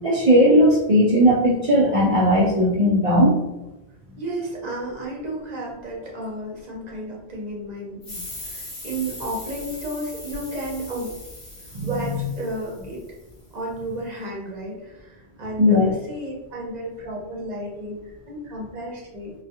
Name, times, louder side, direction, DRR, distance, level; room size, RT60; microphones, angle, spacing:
voice 1, 0.0-3.4 11.7-11.9 15.6-15.9, equal, 65° right, -6 dB, 0.3 m, -17 dB
voice 2, 4.2-11.1 11.8-13.0 13.5-19.3, right 1 dB, 45° right, -3 dB, 0.7 m, -33 dB
sound 1, 8.0-13.3, left 1 dB, 35° left, 0.7 m, -39 dB
2.3 x 2.2 x 2.7 m, 0.99 s
omnidirectional pair, 1.1 m